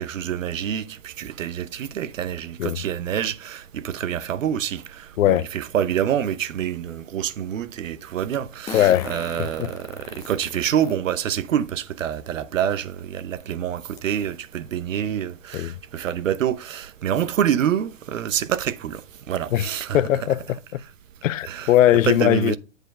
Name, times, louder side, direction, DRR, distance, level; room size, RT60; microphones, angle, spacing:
voice 1, 0.0-19.0 19.3-20.0 21.4-21.7 22.0-22.6, right 9 dB, 75° right, 0.8 m, -26 dB
voice 2, 5.2-5.5 8.7-9.1 9.6-9.7 15.5-15.7 19.5-19.7 19.9-20.8 21.2-22.6, left 13 dB, 75° left, 0.5 m, -19 dB
Fart, 5.9-6.0 8.7-11.0 11.6-11.7 13.0-13.1 13.4-13.5 14.0-14.2, left 6 dB, 10° left, 0.4 m, -37 dB
8.0 x 4.3 x 5.3 m
hypercardioid pair, 125°, 39 cm